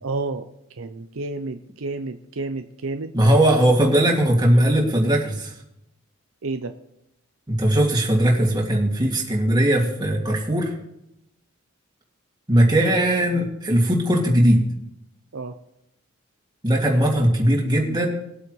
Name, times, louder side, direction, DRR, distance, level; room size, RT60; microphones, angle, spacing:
voice 1, 0.0-0.4 0.8-3.1 6.4-6.7 13.3-13.5 15.3-15.5, right 3 dB, 70° right, 7 dB, 0.7 m, -30 dB
voice 2, 3.1-5.5 7.5-10.7 12.5-14.6 16.6-18.1, right 1 dB, 20° right, -1 dB, 2.4 m, -19 dB
21.0 x 8.3 x 3.2 m, 0.82 s
head